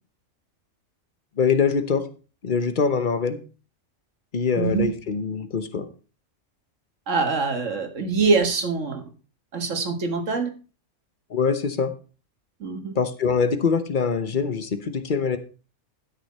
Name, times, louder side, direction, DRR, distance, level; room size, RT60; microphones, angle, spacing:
voice 1, 1.4-2.0 2.4-3.4 4.3-5.9 11.3-11.9 12.9-15.4, left 5 dB, 45° left, 10 dB, 1.1 m, -23 dB
voice 2, 4.6-4.9 7.1-9.0 9.5-10.5 12.6-12.9, right 4 dB, 75° right, 6 dB, 1.9 m, -24 dB
12.5 x 6.5 x 4.3 m, 0.36 s
omnidirectional pair, 1.3 m